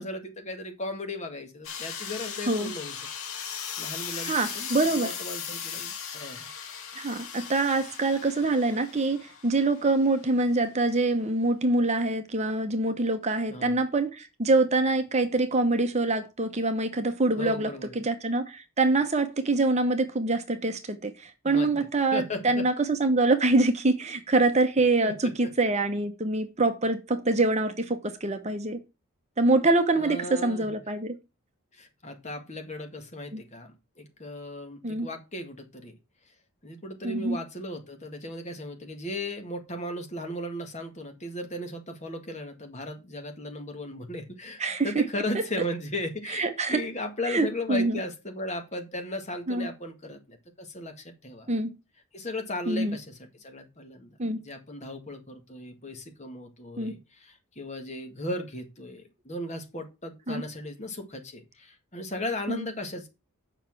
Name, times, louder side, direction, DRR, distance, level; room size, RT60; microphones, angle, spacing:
voice 1, 0.0-3.0 3.8-6.5 13.5-13.8 17.4-18.0 21.4-22.6 25.0-25.3 30.0-30.7 31.7-36.0 36.6-51.5 52.1-63.1, left 1 dB, 30° left, 1.9 m, -36 dB
sound 1, 1.6-10.2, left 7 dB, 70° left, 1.9 m, -38 dB
voice 2, 4.2-5.1 6.9-28.8 29.4-31.2 33.3-33.4 34.8-35.1 37.0-37.4 44.6-45.1 45.3-45.4 46.3-46.8 47.3-48.0 49.5-49.7 51.5-51.7 52.7-53.0 54.2-54.4 56.8-56.9 60.3-60.4 62.5-62.7, right 2 dB, 30° right, 0.9 m, -25 dB
7.4 x 5.8 x 7.2 m
head